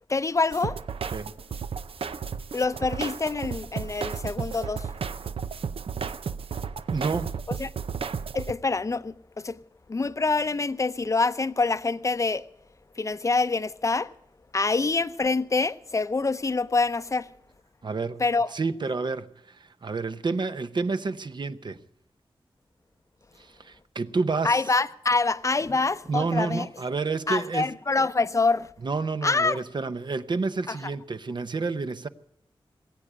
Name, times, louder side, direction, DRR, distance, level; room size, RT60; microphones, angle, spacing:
voice 1, 0.1-0.8 2.5-4.9 7.5-7.7 8.3-9.6 9.9-12.5 13.0-14.1 14.5-17.3 18.2-18.5 24.4-26.7 27.3-28.7 29.2-29.6 30.7-30.8, left 3 dB, 35° left, 0.6 m, -26 dB
sound 1, 0.5-8.5, right 6 dB, 90° right, 0.6 m, -33 dB
voice 2, 6.9-7.3 17.8-18.2 18.5-21.8 23.4-24.6 26.1-27.7 28.8-32.1, right 4 dB, 55° right, 0.7 m, -29 dB
20.0 x 8.7 x 8.0 m
wide cardioid pair, 105°, 9 cm